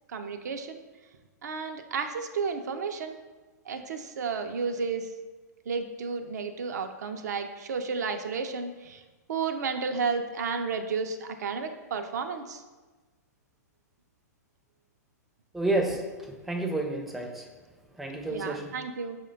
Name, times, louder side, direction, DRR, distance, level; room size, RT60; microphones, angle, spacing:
voice 1, 0.1-0.8 1.4-3.1 3.7-5.1 5.7-9.0 9.3-12.6 18.3-19.2, right 5 dB, 70° right, 6 dB, 0.4 m, -32 dB
voice 2, 15.5-17.5 18.0-18.7, right 2 dB, ahead, 1 dB, 0.4 m, -30 dB
4.8 x 2.1 x 3.8 m, 1.3 s
hypercardioid pair, 115°, 9 cm